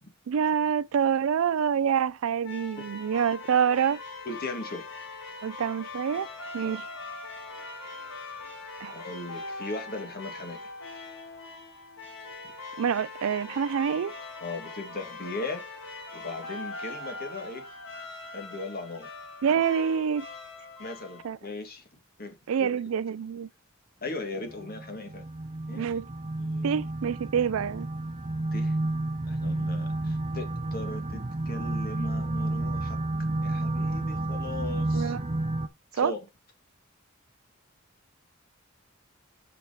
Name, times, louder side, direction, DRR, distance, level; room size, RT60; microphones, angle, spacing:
voice 1, 0.3-4.0 5.4-6.3 6.5-6.8 8.8-8.9 12.8-14.1 19.4-20.3 21.2-21.4 22.5-23.5 25.7-26.1 26.6-27.9 34.9-35.2 36.0-36.1, right 7 dB, 85° right, 0.4 m, -26 dB
sound 1, 2.4-21.3, left 3 dB, 70° left, 4.1 m, -41 dB
voice 2, 4.3-4.8 6.6-6.8 8.9-10.7 14.4-15.6 16.1-17.7 18.3-19.1 20.8-21.8 22.2-22.7 24.0-25.3 25.7-26.0 26.4-26.8 28.5-28.8 29.3-31.2 31.5-33.0 33.4-35.1 35.9-36.2, left 2 dB, 45° left, 1.7 m, -38 dB
sound 2, 24.5-35.7, right 2 dB, 30° right, 0.5 m, -31 dB
5.9 x 4.9 x 4.8 m
head